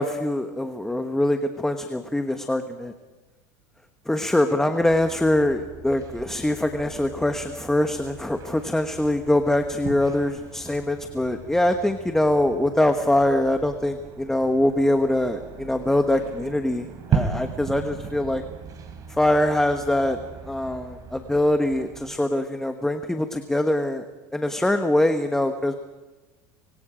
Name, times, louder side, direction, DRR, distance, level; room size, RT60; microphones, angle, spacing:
voice 1, 0.0-2.9 4.1-18.4 19.2-20.2 20.4-24.1 24.3-25.7, left 1 dB, 5° left, 6 dB, 1.2 m, -23 dB
sound 1, 4.8-22.2, right 6 dB, 40° right, 3.8 m, -36 dB
25.0 x 23.0 x 5.1 m, 1.2 s
supercardioid pair, 115°, 9 cm